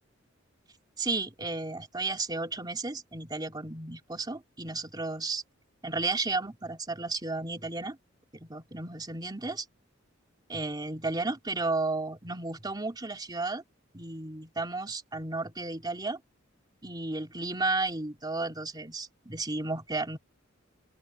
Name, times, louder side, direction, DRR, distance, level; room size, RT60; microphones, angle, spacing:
voice 1, 1.0-5.4 5.8-8.0 8.4-9.6 10.5-13.6 13.9-16.2 16.8-20.2, right 3 dB, 20° right, 3.0 m, -33 dB
open air
head